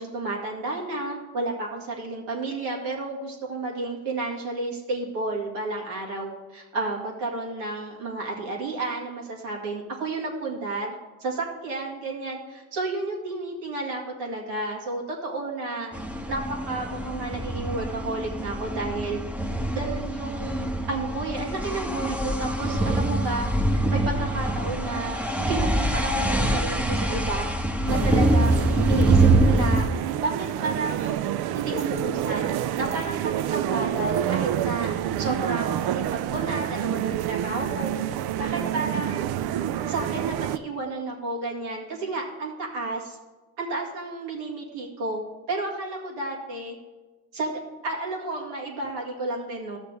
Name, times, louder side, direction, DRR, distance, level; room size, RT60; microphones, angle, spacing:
voice 1, 0.0-15.9 16.3-19.2 19.7-25.2 25.5-27.5 27.9-29.9 30.2-31.2 31.5-34.9 35.2-37.9 38.4-39.3 39.9-43.2 43.6-46.8 47.3-49.8, right 2 dB, 90° right, -2 dB, 1.9 m, -31 dB
sound 1, 15.9-29.8, right 1 dB, 5° right, 0.8 m, -24 dB
sound 2, 27.9-40.6, right 11 dB, 75° right, 0.5 m, -28 dB
12.5 x 6.7 x 3.4 m, 1.2 s
supercardioid pair, 60°, 39 cm